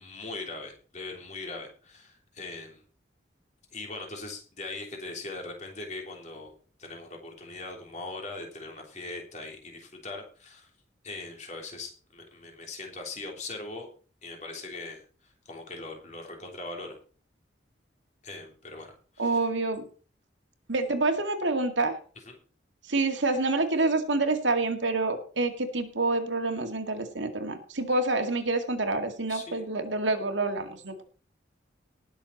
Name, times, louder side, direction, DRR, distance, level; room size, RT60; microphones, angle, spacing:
voice 1, 0.0-2.8 3.7-6.5 6.8-10.7 11.0-13.9 14.2-17.0 18.2-19.5 22.3-22.4 29.3-29.6, left 3 dB, 40° left, 2 dB, 3.2 m, -40 dB
voice 2, 19.2-19.8 20.7-22.0 22.9-31.0, right 2 dB, 80° right, 5 dB, 2.1 m, -27 dB
19.0 x 6.9 x 4.2 m, 0.39 s
head